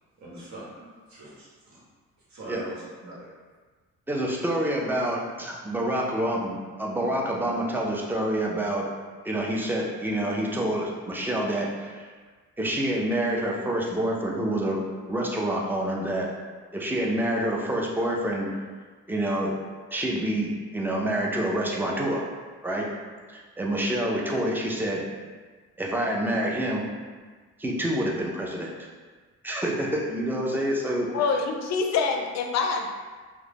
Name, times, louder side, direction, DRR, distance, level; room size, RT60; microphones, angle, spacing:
voice 1, 0.2-0.8 1.1-1.8 2.3-3.3, right 2 dB, 65° right, -6 dB, 1.1 m, -42 dB
voice 2, 4.1-8.9 9.2-12.1 12.6-14.8 15.1-16.3 16.7-18.5 19.1-19.5 19.9-22.2 22.6-22.9 23.3-25.0 25.8-26.9 27.6-28.7 29.4-31.1, right 1 dB, 5° right, -2 dB, 0.4 m, -27 dB
voice 3, 31.1-32.9, left 5 dB, 65° left, 3 dB, 0.4 m, -25 dB
2.4 x 2.1 x 3.3 m, 1.4 s
cardioid pair, 90°, 30 cm